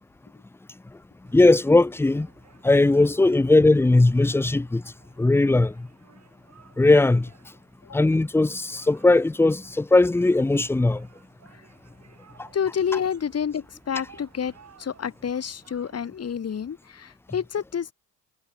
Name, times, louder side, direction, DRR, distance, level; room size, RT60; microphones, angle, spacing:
sound 1, 1.2-16.1, right 7 dB, 40° right, 6.4 m, -57 dB
voice 1, 1.3-2.3 2.6-5.9 6.8-7.5 7.9-11.1 12.4-12.5, left 2 dB, 5° left, 0.5 m, -19 dB
voice 2, 12.5-14.5 14.8-17.9, left 7 dB, 40° left, 2.6 m, -29 dB
supercardioid pair, 90°, 39 cm